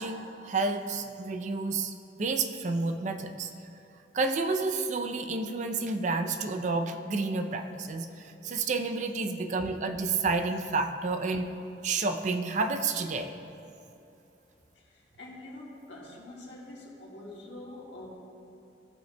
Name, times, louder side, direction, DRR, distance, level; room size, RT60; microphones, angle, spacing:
voice 1, 0.0-3.5 4.1-11.5 11.8-13.4, right 3 dB, 45° right, 7 dB, 0.4 m, -30 dB
voice 2, 14.7-18.1, left 1 dB, 75° left, -4 dB, 1.7 m, -45 dB
15.5 x 5.6 x 2.2 m, 2.8 s
head